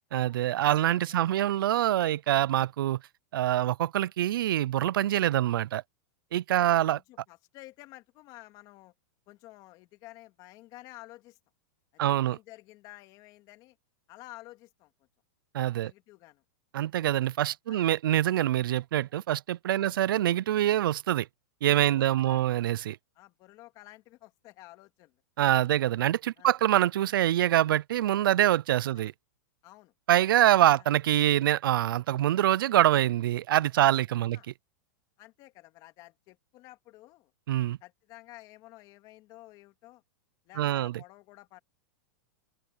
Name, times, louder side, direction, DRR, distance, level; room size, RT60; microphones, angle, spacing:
voice 1, 0.1-3.0 3.3-5.8 6.3-7.0 12.0-12.4 15.5-15.9 16.7-21.3 21.6-23.0 25.4-29.1 30.1-34.4 37.5-37.8 40.6-40.9, right 13 dB, 85° right, 0.4 m, -25 dB
voice 2, 1.1-1.4 6.6-8.9 9.3-11.4 11.9-13.8 14.1-14.9 15.8-16.4 17.0-17.1 17.7-17.9 19.8-20.0 21.8-22.5 23.2-25.2 26.4-26.5 28.9-29.0 29.6-29.9 30.7-30.9 34.3-34.5 35.2-37.3 37.8-40.0 40.5-41.6, left 18 dB, 35° left, 2.5 m, -52 dB
open air
supercardioid pair, 155°, 11 cm